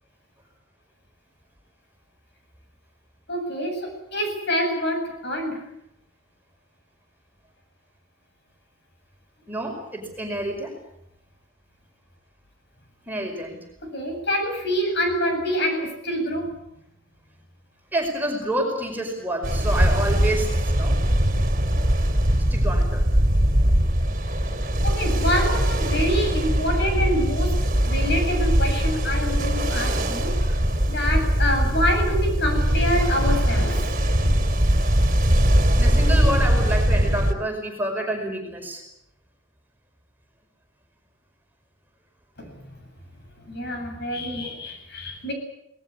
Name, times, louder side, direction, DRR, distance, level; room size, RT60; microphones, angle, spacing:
voice 1, 3.3-5.6 13.8-16.5 24.8-27.5 27.8-30.6 30.9-33.9 42.4-42.6 43.5-45.3, equal, 50° left, 4 dB, 7.8 m, -26 dB
voice 2, 9.5-10.7 13.1-13.6 17.9-21.0 22.5-23.1 35.8-38.8, right 1 dB, 10° right, 2 dB, 5.1 m, -28 dB
Ocean, 19.4-37.3, equal, 40° right, 3.2 m, -21 dB
27.0 x 19.5 x 8.4 m, 0.80 s
head